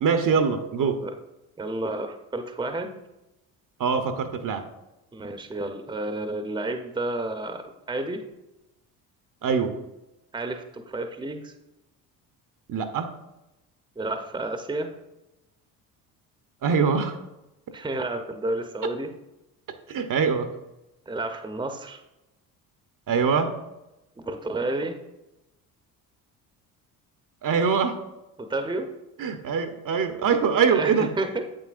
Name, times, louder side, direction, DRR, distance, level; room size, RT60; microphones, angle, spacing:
voice 1, 0.0-1.0 3.8-4.6 9.4-9.7 12.7-13.1 16.6-17.2 19.9-20.5 23.1-23.5 27.4-28.0 29.2-31.1, right 6 dB, 45° right, 8 dB, 0.9 m, -23 dB
voice 2, 0.8-1.1 1.6-2.9 5.1-7.6 7.9-8.2 10.3-11.5 14.0-14.9 17.7-19.1 21.1-22.0 24.2-25.0 28.4-28.9 30.7-31.4, right 2 dB, 10° right, 6 dB, 0.8 m, -31 dB
8.2 x 7.6 x 2.5 m, 0.97 s
hypercardioid pair, 60°, 46 cm